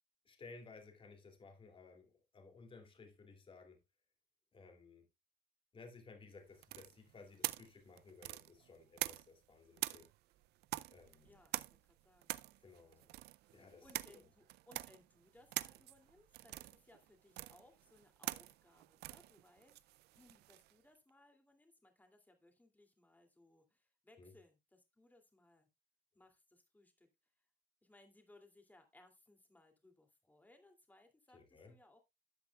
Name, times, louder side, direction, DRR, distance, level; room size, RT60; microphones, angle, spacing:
voice 1, 0.3-3.8 4.5-5.1 5.7-10.1 10.9-11.4 12.6-13.1 13.5-14.2 24.2-24.3 31.3-31.8, left 4 dB, 30° left, 2.6 m, -58 dB
sound 1, 6.6-9.4 9.8-20.7, right 17 dB, 75° right, 0.4 m, -45 dB
voice 2, 7.2-7.5 11.2-11.8 12.0-19.8 20.2-25.7 26.1-27.1 27.8-32.0, left 2 dB, 10° left, 2.6 m, -66 dB
12.5 x 8.3 x 2.3 m
cardioid pair, 110°, 17 cm